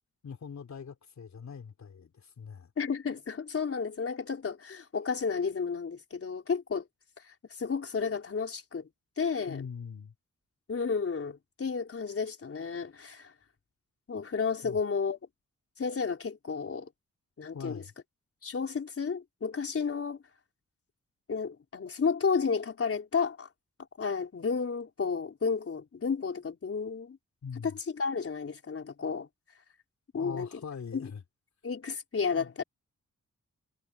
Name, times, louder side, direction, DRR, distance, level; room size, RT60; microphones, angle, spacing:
voice 1, 0.2-2.7 9.5-10.1 14.6-14.8 17.5-17.9 27.4-27.7 30.1-31.2 32.3-32.6, left 6 dB, 65° left, 3.9 m, -42 dB
voice 2, 2.8-6.8 7.2-8.9 9.2-9.6 10.7-13.3 14.1-15.2 15.8-16.9 17.4-17.8 18.4-20.2 21.3-23.5 24.0-27.2 27.9-29.3 30.1-30.5 30.9-31.1 31.6-32.6, left 5 dB, 50° left, 4.2 m, -32 dB
wide cardioid pair, 105°, 29 cm